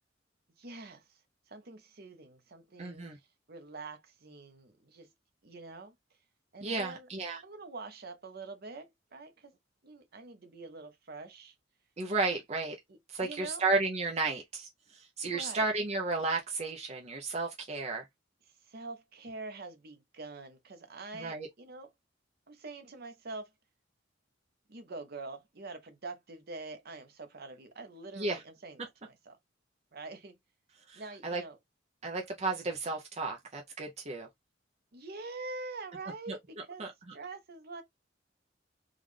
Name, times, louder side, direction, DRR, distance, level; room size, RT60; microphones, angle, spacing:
voice 1, 0.6-1.2 1.5-5.1 5.4-5.9 6.5-7.1 7.4-9.6 9.8-11.5 12.9-13.6 15.2-15.7 18.6-21.9 22.5-23.5 24.7-29.4 29.9-30.4 30.9-31.6 34.9-37.8, right 3 dB, 55° right, 0.9 m, -45 dB
voice 2, 2.8-3.2 6.6-7.4 12.0-12.8 13.1-18.0 21.1-21.5 28.2-28.4 30.9-31.4 32.0-34.3 36.3-36.4 36.8-36.9, right 3 dB, 35° right, 0.6 m, -33 dB
3.7 x 2.5 x 3.2 m
head